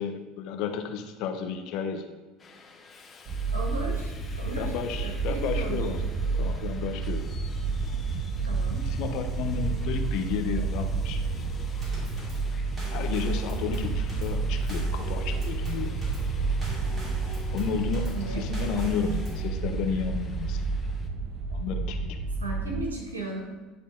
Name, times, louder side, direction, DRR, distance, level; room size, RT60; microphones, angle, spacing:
voice 1, 0.0-2.0 4.6-6.0 6.4-7.3 8.9-11.5 12.9-15.9 17.5-20.8 21.5-22.2, left 7 dB, 60° left, 5 dB, 0.8 m, -32 dB
Subway metro underground, 2.4-21.1, left 4 dB, 30° left, 0.9 m, -50 dB
sound 1, 3.3-22.9, right 4 dB, 50° right, 0.6 m, -30 dB
voice 2, 3.5-4.7 5.0-5.9 8.4-8.8 18.1-18.5 22.4-23.4, right 3 dB, 90° right, -1 dB, 1.6 m, -35 dB
Drum kit / Snare drum / Bass drum, 11.8-19.5, right 1 dB, 30° right, 2.5 m, -40 dB
10.5 x 3.9 x 3.7 m, 1.2 s
hypercardioid pair, 70°, 0 cm